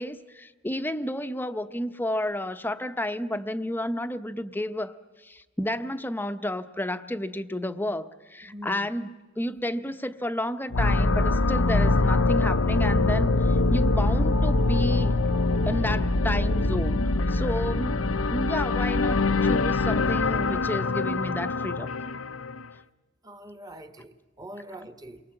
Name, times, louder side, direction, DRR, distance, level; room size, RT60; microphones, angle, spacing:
voice 1, 0.0-4.9 5.2-15.2 15.7-18.0 18.3-21.9, left 1 dB, 10° left, 0.8 m, -31 dB
voice 2, 8.5-8.9 23.2-25.2, equal, 20° right, 1.3 m, -43 dB
sound 1, 10.7-22.7, left 3 dB, 80° left, 0.8 m, -24 dB
28.5 x 23.0 x 7.8 m
head